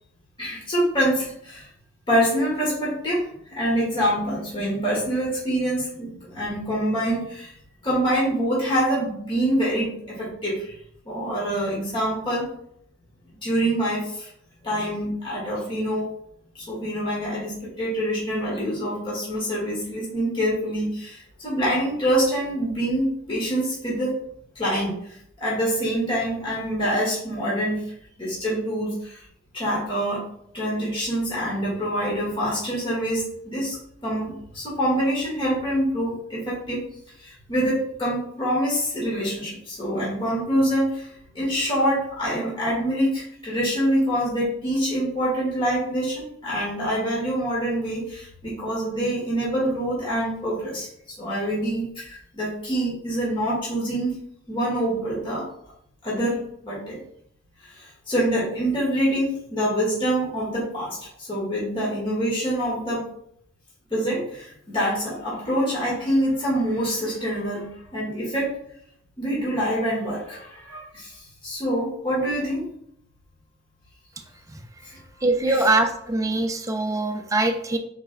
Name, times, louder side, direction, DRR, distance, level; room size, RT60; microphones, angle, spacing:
voice 1, 0.4-1.7 2.1-7.5 7.8-10.8 11.0-12.5 13.4-14.3 14.6-16.1 16.5-24.2 24.5-27.8 28.2-29.2 29.5-30.2 30.5-33.8 34.0-36.8 37.2-54.2 54.5-55.4 56.0-57.0 57.6-63.0 63.9-68.5 69.2-72.6 74.8-75.0 75.4-75.6, equal, 25° left, -6 dB, 1.7 m, -25 dB
voice 2, 75.2-77.8, right 2 dB, 15° right, 5 dB, 0.5 m, -22 dB
5.8 x 4.1 x 2.2 m, 0.71 s
head